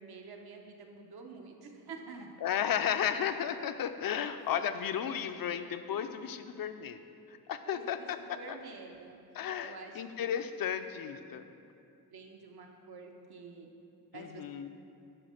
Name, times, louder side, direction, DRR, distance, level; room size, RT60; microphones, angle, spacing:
voice 1, 0.0-2.3 7.6-9.2 9.6-10.3 12.1-13.7 14.1-14.4, right 4 dB, 75° right, 2 dB, 0.9 m, -48 dB
voice 2, 2.4-7.0 7.3-8.6 9.3-11.4 14.1-14.7, left 8 dB, 65° left, 9 dB, 0.5 m, -34 dB
9.2 x 3.7 x 6.4 m, 2.6 s
wide cardioid pair, 110°, 38 cm